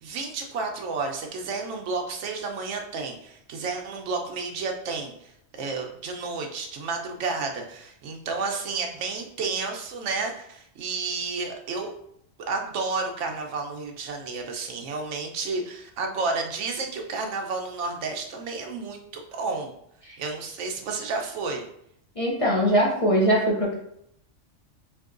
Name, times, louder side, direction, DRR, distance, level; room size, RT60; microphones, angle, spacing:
voice 1, 0.0-11.9 12.5-19.7 20.2-21.7, right 4 dB, 75° right, 3 dB, 1.0 m, -31 dB
voice 2, 22.2-23.7, equal, 35° left, -4 dB, 0.6 m, -21 dB
4.4 x 2.6 x 2.4 m, 0.74 s
omnidirectional pair, 1.2 m